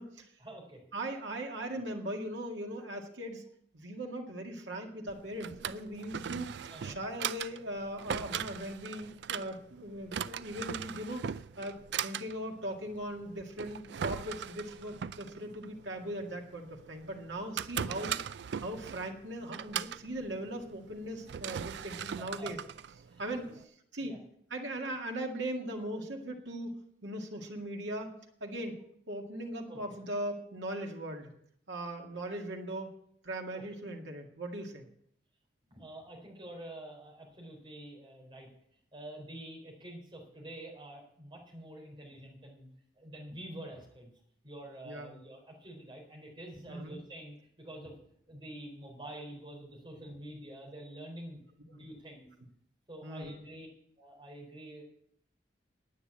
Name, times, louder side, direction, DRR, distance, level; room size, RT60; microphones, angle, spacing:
voice 1, 0.4-0.8 1.7-1.8 6.7-7.1 17.8-18.0 22.2-22.5 23.1-23.6 24.0-24.2 29.7-29.8 33.5-33.6 35.7-38.5 38.9-42.7 43.0-44.1 44.4-48.0 48.3-51.4 51.7-52.3 52.9-53.7 54.0-54.8, right 1 dB, 25° right, -1 dB, 4.1 m, -47 dB
voice 2, 0.9-3.5 3.7-11.3 11.6-11.7 12.0-18.2 18.5-22.6 23.2-23.5 23.9-24.2 24.5-26.7 27.0-28.8 29.1-31.3 31.7-33.0 33.2-34.9 44.8-45.1 46.7-47.0 51.7-51.8 53.0-53.4, right 1 dB, 90° right, 1 dB, 2.0 m, -39 dB
Drawer open or close, 5.1-23.6, right 8 dB, 70° right, 0.4 m, -40 dB
9.8 x 9.2 x 8.6 m, 0.70 s
head